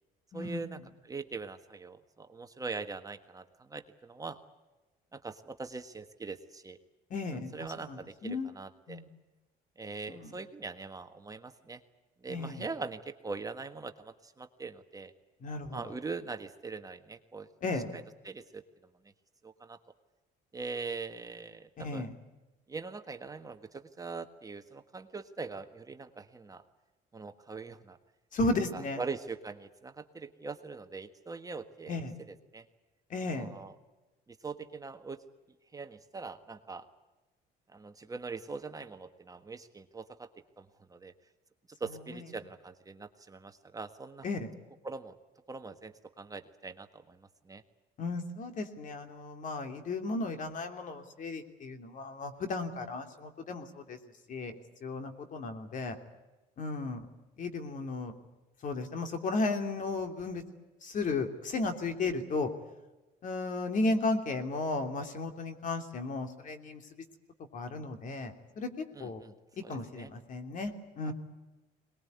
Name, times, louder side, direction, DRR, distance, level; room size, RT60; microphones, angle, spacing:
voice 1, 0.3-0.8 1.0-4.4 5.1-6.8 7.3-9.0 9.8-11.8 12.2-15.1 15.7-17.5 17.9-18.6 19.4-19.8 20.5-22.1 22.7-26.6 27.1-28.0 28.7-32.0 32.3-32.7 33.3-33.7 34.3-35.2 35.7-36.8 37.7-40.3 40.6-41.1 41.8-44.3 44.8-45.2 45.5-47.6 68.9-69.3 69.6-70.1 71.0-71.1, right 4 dB, 20° right, 7 dB, 1.5 m, -42 dB
voice 2, 7.1-7.5 7.8-8.5 8.9-9.1 10.1-10.3 12.3-12.7 15.4-15.8 17.6-17.9 21.8-22.1 28.3-29.0 31.9-32.1 33.1-33.5 42.1-42.2 44.2-44.5 48.0-54.0 54.3-54.5 54.8-56.0 56.6-57.1 57.4-58.1 58.6-60.4 60.8-62.5 63.2-66.8 67.5-69.2 69.7-71.1, left 3 dB, 50° left, 6 dB, 3.1 m, -34 dB
22.5 x 20.5 x 9.5 m, 1.1 s
cardioid pair, 110°, 17 cm